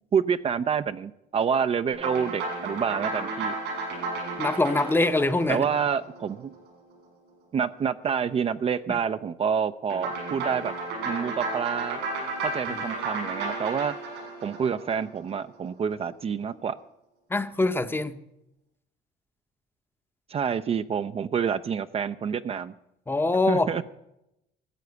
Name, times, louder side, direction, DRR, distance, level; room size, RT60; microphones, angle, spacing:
voice 1, 0.1-3.5 5.5-6.5 7.5-10.7 11.0-12.0 12.4-14.0 14.4-16.8 20.3-22.7 23.5-23.8, right 7 dB, 35° right, 11 dB, 0.5 m, -27 dB
sound 1, 1.9-6.6 9.9-15.3, right 3 dB, 90° right, 7.3 m, -33 dB
voice 2, 4.4-5.7 8.9-9.0 12.7-12.8 17.3-18.2 23.1-23.8, left 2 dB, 15° left, 11 dB, 0.8 m, -24 dB
14.5 x 7.6 x 9.5 m, 0.85 s
cardioid pair, 110°, 17 cm